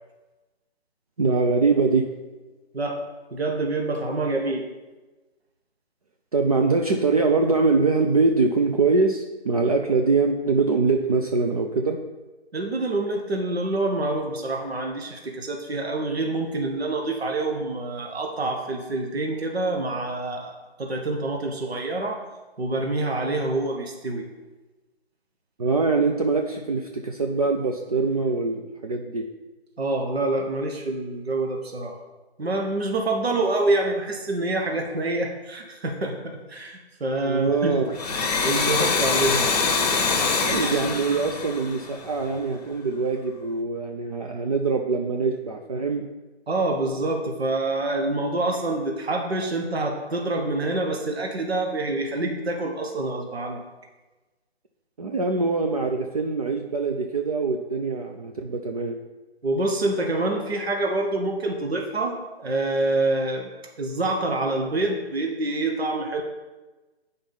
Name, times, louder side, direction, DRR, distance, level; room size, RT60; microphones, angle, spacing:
voice 1, 1.2-2.1 6.3-12.0 25.6-29.3 37.2-37.9 40.4-46.0 55.0-59.0, right 4 dB, 35° right, 3 dB, 0.6 m, -23 dB
voice 2, 3.3-4.6 12.5-22.2 22.6-24.3 29.8-32.0 32.4-37.8 38.4-39.6 46.5-53.6 59.4-63.5 63.8-66.2, right 2 dB, 70° right, 2 dB, 1.7 m, -26 dB
Domestic sounds home sounds, 37.9-42.4, left 4 dB, 35° left, 1.1 m, -24 dB
8.9 x 5.2 x 5.5 m, 1.2 s
figure-of-eight pair, 155°, 33 cm